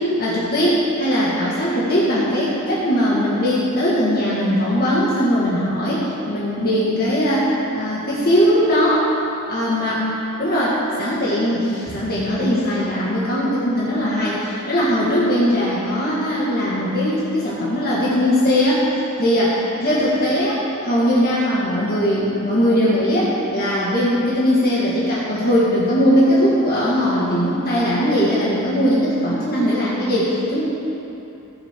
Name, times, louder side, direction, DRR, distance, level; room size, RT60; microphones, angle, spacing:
voice 1, 0.0-9.1 9.5-10.0 10.4-18.8 19.2-30.6, equal, 45° left, -8 dB, 1.9 m, -19 dB
19.0 x 6.8 x 3.8 m, 2.9 s
head